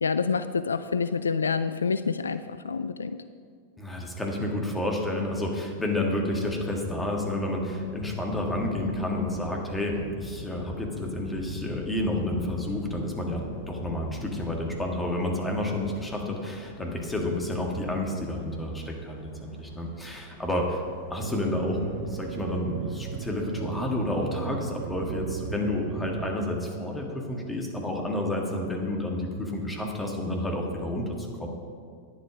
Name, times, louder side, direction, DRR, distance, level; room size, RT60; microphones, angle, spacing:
voice 1, 0.0-3.2, left 5 dB, 75° left, 12 dB, 0.3 m, -27 dB
voice 2, 3.8-20.8 21.1-31.5, left 1 dB, 10° left, 0 dB, 1.9 m, -30 dB
sound 1, 6.2-24.1, left 3 dB, 50° left, 1.5 m, -45 dB
sound 2, 21.2-26.3, right 11 dB, 55° right, 0.3 m, -37 dB
11.0 x 10.0 x 5.1 m, 2.1 s
figure-of-eight pair, 90°, 0 cm